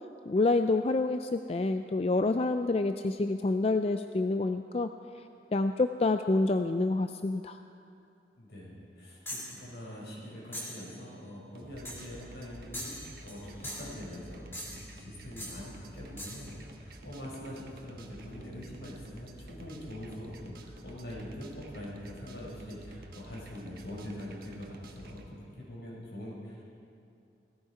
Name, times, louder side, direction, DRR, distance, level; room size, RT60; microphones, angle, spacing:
voice 1, 0.3-4.9 5.5-7.6, left 2 dB, 35° left, 8 dB, 0.3 m, -27 dB
voice 2, 8.4-13.0 13.2-26.7, left 1 dB, 75° left, -4 dB, 5.0 m, -44 dB
sound 1, 9.3-9.6 10.5-10.8 11.9-12.1 12.7-13.4 13.6-14.0 14.5-14.9 15.4-15.6 16.2-16.5, equal, 15° left, 2.7 m, -41 dB
sound 2, 11.5-25.3, right 1 dB, 55° right, 1.3 m, -50 dB
16.5 x 16.0 x 4.9 m, 2.6 s
head